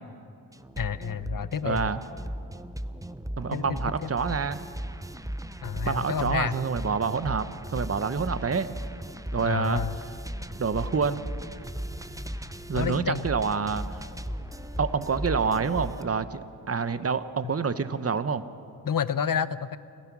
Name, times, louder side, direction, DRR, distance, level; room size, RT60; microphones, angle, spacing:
sound 1, 0.5-16.0, right 1 dB, 10° right, 0.7 m, -37 dB
voice 1, 0.8-1.9 3.5-3.6 5.6-6.5 9.4-10.0 12.7-13.3 18.9-19.8, left 8 dB, 55° left, 15 dB, 0.7 m, -29 dB
voice 2, 1.6-2.0 3.4-4.6 5.8-8.8 9.3-10.2 10.6-11.2 12.7-14.0 14.8-18.4, right 5 dB, 35° right, 13 dB, 0.9 m, -28 dB
sound 2, 10.4-16.1, left 1 dB, 80° left, 3.4 m, -48 dB
29.0 x 15.0 x 6.1 m, 2.5 s
cardioid pair, 55°, 41 cm